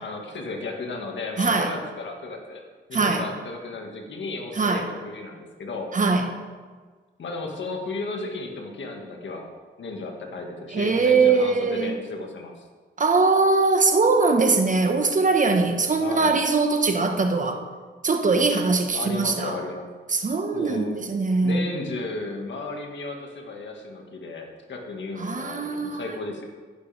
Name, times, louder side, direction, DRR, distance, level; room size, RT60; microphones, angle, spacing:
voice 1, 0.0-2.6 2.9-5.9 7.2-9.5 9.8-12.6 16.0-16.4 18.9-19.9 20.5-21.1 21.4-26.5, left 3 dB, 65° left, 2 dB, 1.8 m, -34 dB
voice 2, 1.4-1.7 2.9-3.3 4.6-4.8 5.9-6.3 10.7-12.0 13.0-17.6 18.0-19.6 20.1-21.7 25.2-26.0, right 4 dB, 40° right, 5 dB, 1.3 m, -21 dB
11.5 x 11.0 x 3.5 m, 1.5 s
cardioid pair, 85°, 21 cm